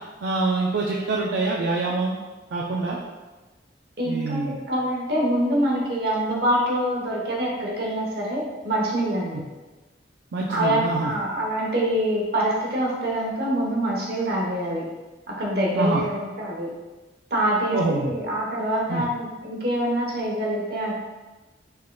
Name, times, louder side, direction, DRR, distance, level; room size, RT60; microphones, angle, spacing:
voice 1, 0.2-2.2 2.5-3.0 4.0-4.6 10.3-11.1 15.7-16.0 17.7-18.1 18.9-19.0, right 3 dB, 70° right, -2 dB, 0.4 m, -25 dB
voice 2, 4.0-9.4 10.5-14.8 15.3-16.7 17.3-20.9, right 1 dB, 55° right, -2 dB, 1.0 m, -25 dB
5.4 x 3.6 x 2.3 m, 1.2 s
head